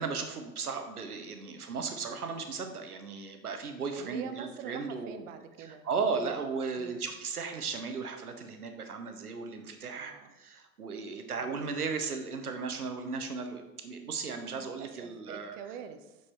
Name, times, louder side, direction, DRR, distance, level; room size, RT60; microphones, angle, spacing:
voice 1, 0.0-5.2 5.6-15.6, right 5 dB, 85° right, 6 dB, 0.9 m, -36 dB
voice 2, 4.0-6.4 6.8-7.0 9.9-10.3 11.4-11.6 14.5-16.2, right 8 dB, 60° right, 9 dB, 0.9 m, -45 dB
6.9 x 4.8 x 4.4 m, 1.0 s
figure-of-eight pair, 80°, 44 cm